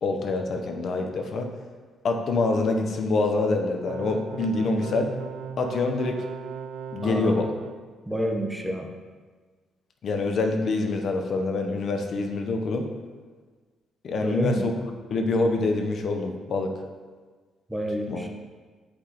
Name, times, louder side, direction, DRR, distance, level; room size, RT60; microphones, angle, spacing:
voice 1, 0.0-1.5 2.0-5.1 5.6-6.2 6.9-7.5 10.0-12.9 14.0-16.7 18.1-18.2, left 3 dB, 55° left, 4 dB, 0.7 m, -26 dB
sound 1, 3.9-7.8, right 7 dB, 85° right, 0.3 m, -37 dB
voice 2, 7.0-7.4 8.1-8.9 14.2-14.7 17.7-18.3, right 1 dB, 5° right, 2 dB, 0.8 m, -28 dB
7.9 x 5.1 x 2.9 m, 1.4 s
cardioid pair, 90°, 0 cm